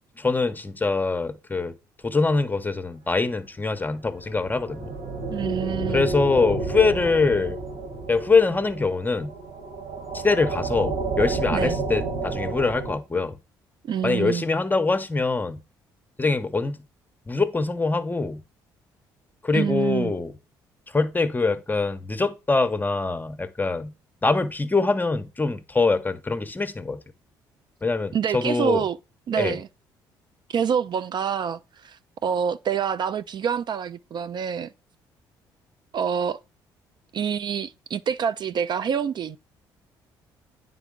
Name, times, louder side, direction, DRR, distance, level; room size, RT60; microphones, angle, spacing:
voice 1, 0.2-1.7 2.0-5.0 5.9-7.6 8.1-9.3 10.1-13.4 14.0-15.6 16.2-16.8 17.3-18.4 19.4-20.3 20.9-23.9 24.2-27.0 27.8-28.8 29.4-29.6, left 3 dB, 15° left, 0.7 m, -24 dB
sound 1, 4.1-12.9, right 3 dB, 75° right, 2.9 m, -31 dB
voice 2, 5.3-6.1 11.5-11.8 13.8-14.4 19.5-20.1 28.1-29.0 29.3-29.7 30.5-34.7 35.9-36.4 37.1-39.4, right 7 dB, 45° right, 0.3 m, -26 dB
9.0 x 3.9 x 3.7 m
hypercardioid pair, 55°, 10 cm